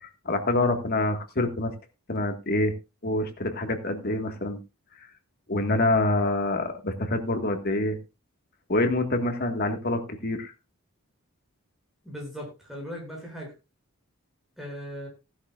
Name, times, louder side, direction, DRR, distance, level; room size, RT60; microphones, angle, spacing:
voice 1, 0.0-1.7 2.1-2.7 3.0-4.6 5.5-8.0 8.7-10.5, left 2 dB, 45° left, 6 dB, 1.8 m, -26 dB
voice 2, 12.0-13.5 14.6-15.1, equal, ahead, -1 dB, 6.9 m, -38 dB
16.5 x 11.5 x 2.5 m, 0.27 s
head